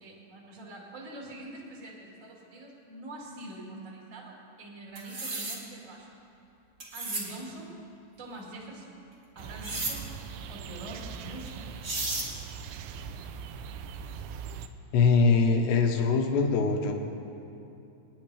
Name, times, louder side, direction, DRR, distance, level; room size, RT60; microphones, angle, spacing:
voice 1, 0.0-6.1 6.9-7.7 8.2-9.0 9.3-10.1 10.5-11.7, right 1 dB, 45° right, -3 dB, 1.0 m, -44 dB
sound 1, 5.0-5.6 6.8-7.3 9.6-10.0 11.5-11.6 11.8-12.3, right 2 dB, 65° right, 0.9 m, -33 dB
sound 2, 9.4-14.7, right 6 dB, 85° right, 2.4 m, -41 dB
voice 2, 14.9-16.9, left 4 dB, 75° left, 3 dB, 2.9 m, -22 dB
26.5 x 9.9 x 3.3 m, 2.9 s
omnidirectional pair, 5.4 m